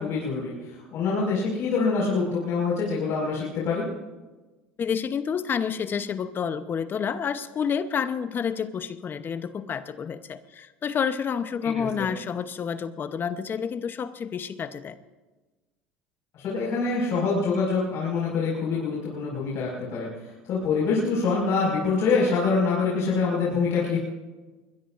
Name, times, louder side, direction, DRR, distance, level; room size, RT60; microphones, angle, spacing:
voice 1, 0.0-3.9 11.6-12.1 16.3-24.0, left 4 dB, 55° left, -5 dB, 5.5 m, -25 dB
voice 2, 4.8-15.0, left 7 dB, 40° left, 12 dB, 0.9 m, -29 dB
21.5 x 21.5 x 2.6 m, 1.2 s
hypercardioid pair, 80°, 6 cm